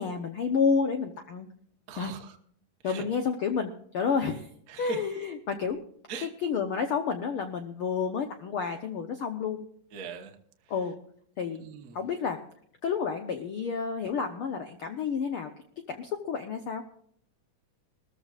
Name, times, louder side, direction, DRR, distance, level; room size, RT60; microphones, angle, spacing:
voice 1, 0.0-1.5 1.9-2.1 2.8-4.5 4.8-5.8 6.2-9.6 10.7-11.0 11.4-11.7 11.9-12.4 12.8-15.5 15.8-16.8, left 6 dB, 90° left, 6 dB, 1.2 m, -30 dB
voice 2, 1.9-2.4 2.8-3.0 4.7-5.0 6.1-6.3 9.9-10.3 11.5-12.0, right 5 dB, 75° right, 4 dB, 0.8 m, -40 dB
21.0 x 14.0 x 2.4 m, 0.66 s
omnidirectional pair, 3.7 m